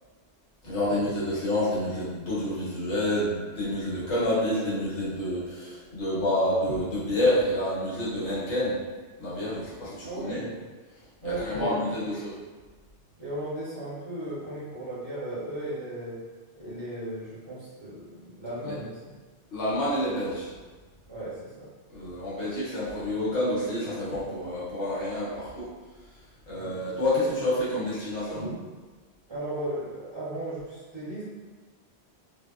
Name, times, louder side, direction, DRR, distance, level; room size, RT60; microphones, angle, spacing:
voice 1, 0.6-8.8 9.2-10.4 11.2-12.4 18.6-18.8 19.5-20.5 21.9-25.7 26.5-28.4, left 1 dB, 80° left, -9 dB, 1.3 m, -28 dB
voice 2, 10.0-10.6 11.2-11.9 13.2-16.2 16.6-19.1 21.1-21.7 26.5-26.8 28.3-28.6 29.3-31.2, right 1 dB, 30° right, -12 dB, 0.7 m, -36 dB
2.7 x 2.1 x 2.3 m, 1.3 s
omnidirectional pair, 1.2 m